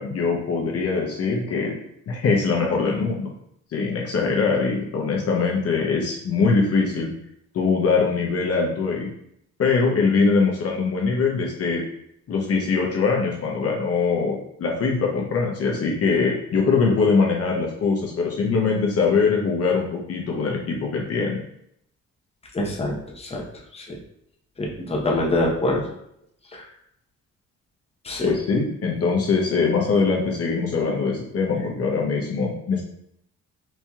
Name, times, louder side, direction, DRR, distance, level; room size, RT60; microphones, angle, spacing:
voice 1, 0.0-1.7 2.1-3.3 3.7-7.1 7.5-9.1 9.6-11.8 12.3-21.4 28.2-32.8, left 4 dB, 50° left, -1 dB, 0.8 m, -22 dB
voice 2, 22.5-23.4 23.7-23.8 24.6-25.8 26.5-26.6 28.0-28.3, left 1 dB, 20° left, -1 dB, 0.8 m, -25 dB
4.2 x 2.7 x 2.3 m, 0.74 s
cardioid pair, 90°, 30 cm